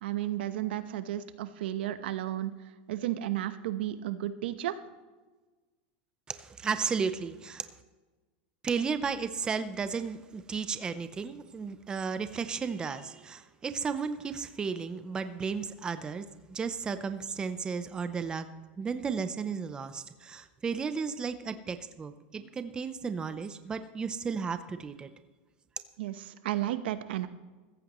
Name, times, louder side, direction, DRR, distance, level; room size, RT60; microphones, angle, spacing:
voice 1, 0.0-2.5 2.9-4.8 26.0-27.3, right 13 dB, 90° right, 11 dB, 1.0 m, -33 dB
voice 2, 6.3-7.7 8.6-18.5 18.8-25.1, right 5 dB, 15° right, 10 dB, 0.6 m, -34 dB
15.0 x 15.0 x 3.0 m, 1.3 s
supercardioid pair, 155°, 5 cm